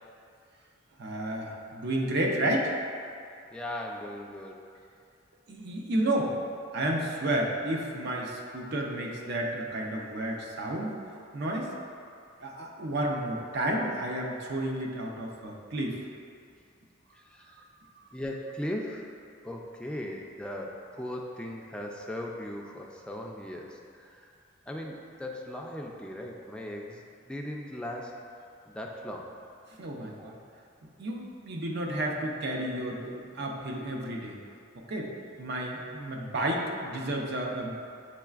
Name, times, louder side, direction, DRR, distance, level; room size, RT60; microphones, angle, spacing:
voice 1, 1.0-2.7 5.5-6.3 6.7-10.9 11.3-11.7 12.4-16.0 29.8-30.4 31.0-34.4 34.9-35.1 35.4-37.7, right 1 dB, 60° right, 0 dB, 0.6 m, -31 dB
voice 2, 3.2-4.6 16.5-16.7 17.1-17.7 18.1-19.1 19.4-24.3 24.7-28.2 28.7-29.4 30.2-30.3, left 1 dB, 5° left, -1 dB, 0.3 m, -38 dB
6.8 x 3.1 x 2.4 m, 2.4 s
head